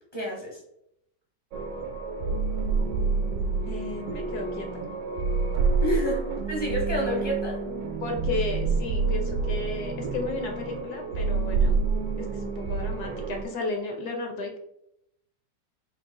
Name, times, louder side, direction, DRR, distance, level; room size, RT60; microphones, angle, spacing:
voice 1, 0.1-0.6 5.8-7.6, equal, 35° right, -3 dB, 0.4 m, -29 dB
sound 1, 1.5-13.4, right 4 dB, 65° right, 1.0 m, -28 dB
voice 2, 3.7-4.9 8.0-11.7 12.2-14.6, left 2 dB, 70° left, 3 dB, 1.1 m, -33 dB
3.9 x 2.4 x 3.7 m, 0.77 s
omnidirectional pair, 1.9 m